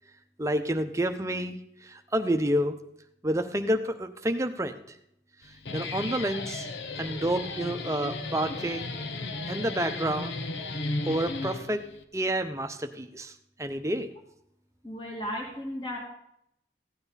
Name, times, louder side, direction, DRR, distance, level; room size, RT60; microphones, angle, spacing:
voice 1, 0.4-1.6 1.8-2.8 3.2-4.8 5.7-6.7 7.0-8.9 9.5-10.4 11.0-11.8 12.1-13.3 13.6-14.1, right 1 dB, 15° right, 6 dB, 0.8 m, -29 dB
Guitar, 5.4-12.0, left 3 dB, 85° left, 1.0 m, -35 dB
voice 2, 14.8-16.0, equal, 30° left, -2 dB, 2.5 m, -35 dB
15.5 x 9.5 x 4.1 m, 0.75 s
head